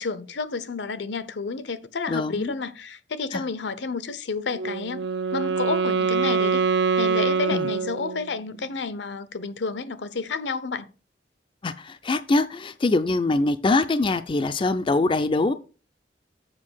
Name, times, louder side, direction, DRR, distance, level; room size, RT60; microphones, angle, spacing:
voice 1, 0.0-6.6 7.0-10.9, left 4 dB, 75° left, 0.7 m, -30 dB
voice 2, 2.1-2.5 3.3-3.4 7.5-7.7 11.6-15.5, left 2 dB, 30° left, 0.4 m, -23 dB
Wind instrument woodwind instrument, 4.5-8.5, right 5 dB, 70° right, 0.6 m, -24 dB
7.4 x 5.3 x 6.2 m
head